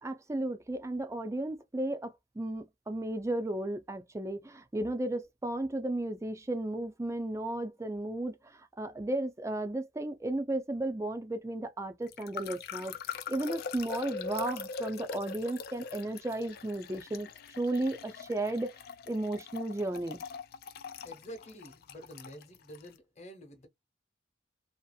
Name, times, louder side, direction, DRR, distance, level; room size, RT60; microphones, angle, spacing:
voice 1, 0.0-8.4 8.8-12.9 13.3-17.3 17.6-18.8 19.1-20.2, right 1 dB, 15° right, 0.4 m, -34 dB
sound 1, 12.1-22.9, left 5 dB, 55° left, 0.3 m, -42 dB
voice 2, 21.0-23.7, equal, 35° left, 1.0 m, -48 dB
2.7 x 2.4 x 2.3 m
head